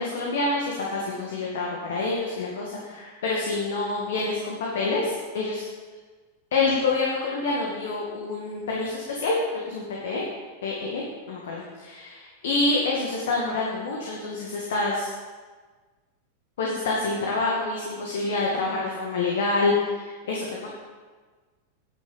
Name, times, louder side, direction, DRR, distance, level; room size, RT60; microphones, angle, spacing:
voice 1, 0.0-5.6 6.5-10.2 10.6-15.1 16.6-20.7, left 3 dB, 60° left, -3 dB, 2.2 m, -27 dB
10.5 x 6.7 x 7.0 m, 1.4 s
figure-of-eight pair, 90°, 0 cm